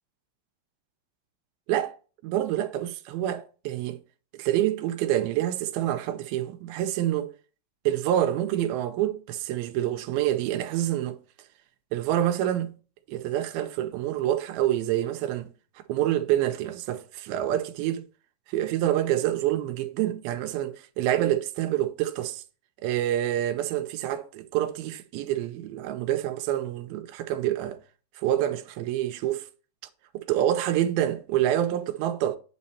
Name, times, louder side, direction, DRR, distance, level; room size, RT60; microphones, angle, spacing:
voice 1, 2.2-4.0 4.3-7.3 7.9-11.2 11.9-12.7 13.1-15.5 15.9-18.0 18.5-22.4 22.8-27.8 28.2-29.5 30.1-32.4, right 12 dB, 85° right, 2.5 m, -27 dB
9.3 x 4.3 x 4.2 m
omnidirectional pair, 4.2 m